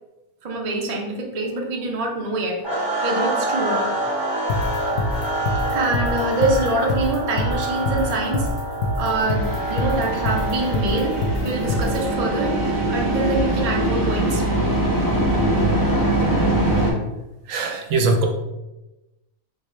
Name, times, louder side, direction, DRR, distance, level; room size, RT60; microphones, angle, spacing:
voice 1, 0.4-4.0 5.7-8.5 9.0-14.4, right 2 dB, 55° right, 0 dB, 0.4 m, -25 dB
sound 1, 2.6-16.7, right 2 dB, ahead, 1.0 m, -28 dB
sound 2, 4.5-12.0, left 2 dB, 70° left, 0.8 m, -24 dB
sound 3, 9.1-16.9, right 1 dB, 20° left, 0.6 m, -22 dB
voice 2, 17.5-18.3, right 3 dB, 75° right, 3 dB, 1.0 m, -21 dB
3.5 x 2.5 x 3.2 m, 0.97 s
omnidirectional pair, 1.4 m